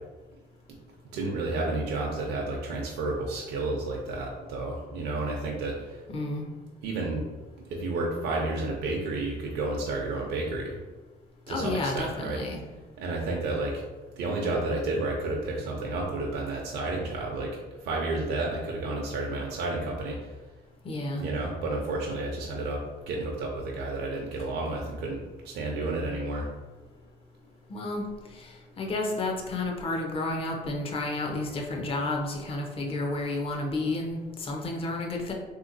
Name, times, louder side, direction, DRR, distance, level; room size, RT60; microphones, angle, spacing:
voice 1, 1.1-6.0 6.8-7.2 7.7-10.8 11.5-12.4 13.0-13.8 14.2-20.3 21.1-25.2 25.4-26.5, right 2 dB, 75° right, -2 dB, 0.6 m, -31 dB
voice 2, 6.1-6.5 11.5-12.6 20.8-21.2 27.7-28.0 28.3-35.3, left 2 dB, 35° left, 1 dB, 0.6 m, -31 dB
3.6 x 2.8 x 2.5 m, 1.2 s
cardioid pair, 110°, 17 cm